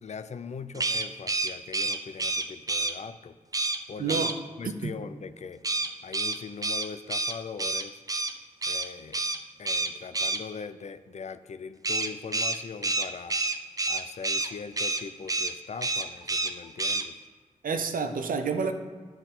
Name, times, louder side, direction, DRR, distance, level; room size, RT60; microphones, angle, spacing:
voice 1, 0.0-3.4 3.9-4.3 4.6-8.0 8.7-9.2 9.6-13.4 13.9-17.2, left 5 dB, 55° left, 12 dB, 0.4 m, -41 dB
sound 1, 0.7-2.9 3.5-3.8 4.1-4.3 5.6-8.3 8.6-8.9 9.1-9.4 9.7-10.4 11.8-14.5 14.8-15.0 15.3-15.5 15.8-16.5 16.8-17.0, right 3 dB, 25° right, 0.5 m, -28 dB
voice 2, 4.0-4.3 4.8-4.9 17.6-18.7, right 5 dB, 85° right, 7 dB, 0.6 m, -28 dB
9.9 x 4.5 x 3.7 m, 1.5 s
cardioid pair, 60°, 14 cm